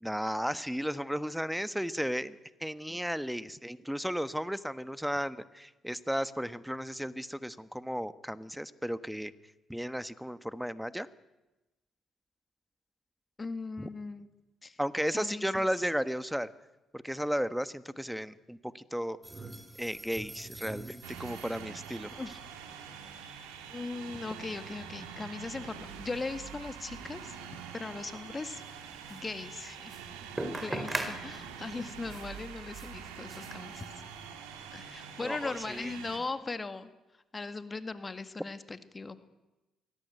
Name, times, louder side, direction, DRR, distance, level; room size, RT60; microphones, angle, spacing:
voice 1, 0.0-9.3 9.7-11.1 13.8-13.9 14.8-16.5 16.9-19.2 19.8-22.1 35.2-35.9, equal, ahead, 14 dB, 1.3 m, -34 dB
voice 2, 13.4-14.3 14.6-14.8 15.1-15.7 22.1-22.4 23.7-27.4 27.7-28.6 29.1-29.9 30.6-33.9 34.7-36.9 37.3-39.2, left 3 dB, 30° left, 11 dB, 1.9 m, -39 dB
sound 1, 19.2-34.3, right 2 dB, 20° right, 4.2 m, -44 dB
sound 2, 21.0-36.2, right 7 dB, 85° right, 2.7 m, -45 dB
23.5 x 17.5 x 9.4 m, 1.0 s
hypercardioid pair, 55°, 0 cm